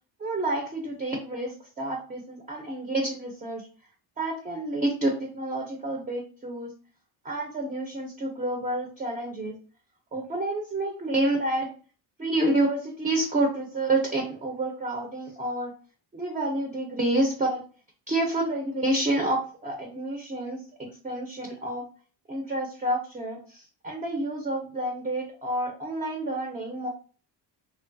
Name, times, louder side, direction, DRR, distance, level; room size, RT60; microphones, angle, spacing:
voice 1, 0.2-3.7 4.2-6.7 7.2-9.5 10.1-11.7 12.2-15.7 16.1-17.6 18.1-21.8 22.3-26.9, right 1 dB, 20° right, 1 dB, 0.4 m, -29 dB
3.0 x 2.3 x 2.5 m, 0.39 s
cardioid pair, 135°, 43 cm